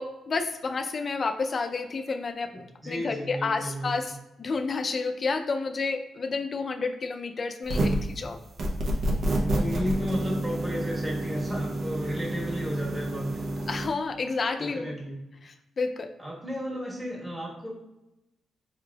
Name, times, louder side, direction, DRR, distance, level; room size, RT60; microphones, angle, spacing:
voice 1, 0.0-4.1 4.4-8.4 13.7-14.9 15.4-16.1, left 4 dB, 40° left, 6 dB, 0.4 m, -30 dB
voice 2, 2.8-3.9 9.4-13.4 14.6-15.2 16.2-17.7, equal, 10° right, -5 dB, 1.3 m, -33 dB
sound 1, 7.6-8.1 8.6-13.9, right 1 dB, 60° right, 0.8 m, -29 dB
4.8 x 3.3 x 2.3 m, 0.93 s
cardioid pair, 105°, 0 cm